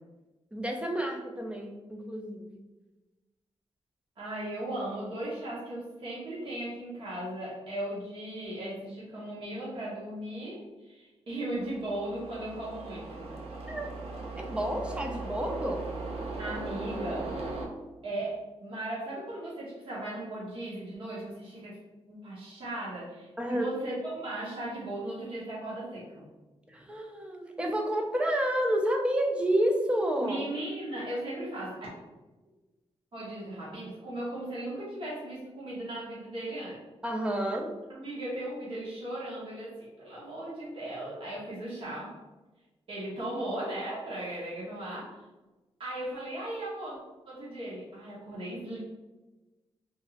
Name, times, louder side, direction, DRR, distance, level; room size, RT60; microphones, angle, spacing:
voice 1, 0.5-2.6 13.7-13.9 14.4-15.8 23.4-23.7 26.7-30.4 37.0-37.7, right 1 dB, 10° right, 2 dB, 0.4 m, -30 dB
voice 2, 4.2-13.4 16.4-17.4 18.0-21.8 22.1-26.2 30.2-31.8 33.1-36.8 37.9-42.1 42.9-45.1 45.8-47.0 47.3-48.8, right 1 dB, 55° right, -7 dB, 0.9 m, -37 dB
sound 1, 11.5-17.7, right 3 dB, 70° right, 0.5 m, -38 dB
2.9 x 2.5 x 2.4 m, 1.1 s
wide cardioid pair, 135°, 11 cm